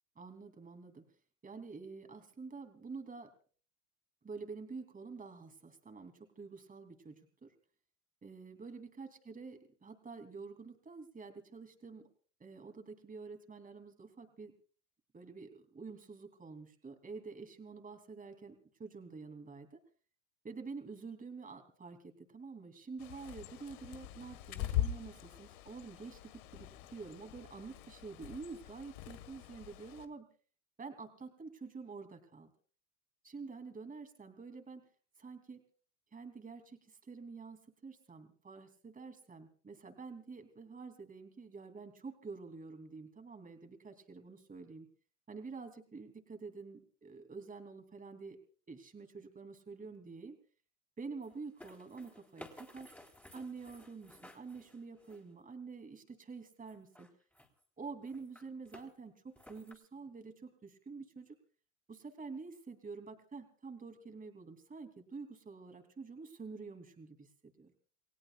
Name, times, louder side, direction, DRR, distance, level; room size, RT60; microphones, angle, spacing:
voice 1, 0.1-1.0 1.4-3.3 4.2-7.5 8.2-12.0 12.4-14.5 15.1-19.8 20.4-30.3 30.8-32.5 33.2-34.8 35.2-35.6 36.1-44.9 45.3-48.4 48.7-50.4 51.0-53.0 53.3-57.1 57.8-61.4 61.9-67.7, right 4 dB, 15° right, 6 dB, 3.0 m, -48 dB
Bird, 23.0-30.1, left 11 dB, 65° left, 1.8 m, -42 dB
sound 1, 51.2-55.4 56.6-57.6 58.0-58.9 59.4-59.7, left 1 dB, 5° left, 3.8 m, -56 dB
29.5 x 17.0 x 2.4 m, 0.42 s
supercardioid pair, 115°, 49 cm